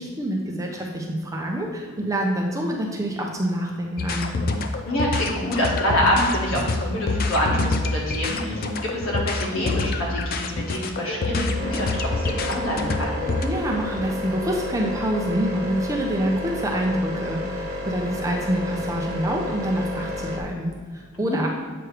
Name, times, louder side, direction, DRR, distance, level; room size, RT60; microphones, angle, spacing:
voice 1, 0.0-4.3 13.4-21.5, right 1 dB, 15° right, -1 dB, 0.6 m, -26 dB
sound 1, 4.0-13.4, left 3 dB, 45° left, 0.4 m, -26 dB
voice 2, 4.8-13.2 21.1-21.4, equal, 70° left, -3 dB, 1.7 m, -26 dB
sound 2, 11.5-20.4, left 1 dB, 45° right, 1.0 m, -31 dB
7.9 x 3.2 x 4.8 m, 1.5 s
head